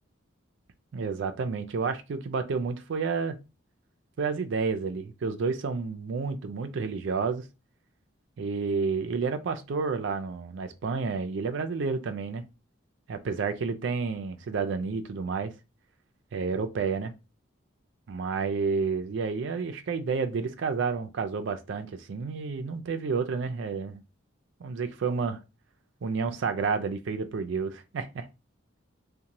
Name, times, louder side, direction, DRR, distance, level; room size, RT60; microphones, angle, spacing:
voice 1, 0.9-3.4 4.2-7.5 8.4-12.4 13.1-15.5 16.3-17.1 18.1-24.0 24.6-25.4 26.0-28.3, right 5 dB, 65° right, 0.4 m, -30 dB
2.6 x 2.1 x 2.9 m
head